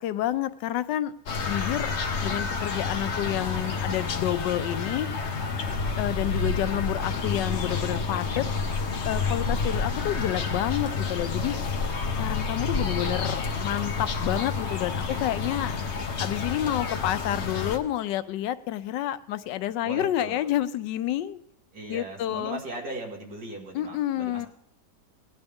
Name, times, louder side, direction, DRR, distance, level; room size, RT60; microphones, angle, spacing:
voice 1, 0.0-1.1 1.5-1.9 2.2-5.1 6.0-8.5 9.0-11.6 12.2-15.8 16.2-21.4 21.9-22.6 23.7-24.5, left 12 dB, 90° left, 12 dB, 1.3 m, -29 dB
sound 1, 1.3-17.8, left 4 dB, 50° left, 1.0 m, -29 dB
voice 2, 15.1-15.6 19.8-20.5 21.7-24.5, right 2 dB, 70° right, 0 dB, 2.5 m, -39 dB
18.5 x 10.5 x 3.5 m, 0.74 s
omnidirectional pair, 1.8 m